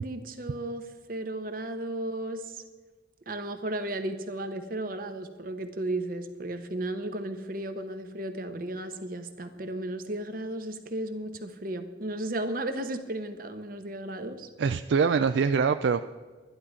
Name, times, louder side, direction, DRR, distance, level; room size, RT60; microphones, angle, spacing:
voice 1, 0.0-2.6 3.3-14.5, right 1 dB, 50° right, 8 dB, 1.1 m, -34 dB
voice 2, 14.6-16.0, right 5 dB, 70° right, 10 dB, 0.3 m, -24 dB
12.0 x 11.0 x 5.0 m, 1.4 s
head